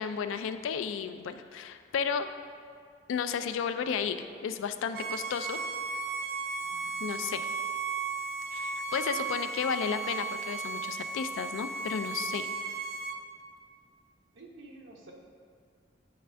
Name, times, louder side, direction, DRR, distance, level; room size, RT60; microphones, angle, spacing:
voice 1, 0.0-2.3 3.1-5.6 7.0-7.5 8.5-12.5, left 6 dB, 85° left, 10 dB, 0.3 m, -33 dB
Bowed string instrument, 4.9-13.2, right 4 dB, 50° right, 0.3 m, -35 dB
voice 2, 6.6-7.3 14.3-15.1, right 2 dB, 80° right, 0 dB, 0.8 m, -52 dB
8.6 x 3.3 x 3.3 m, 2.2 s
head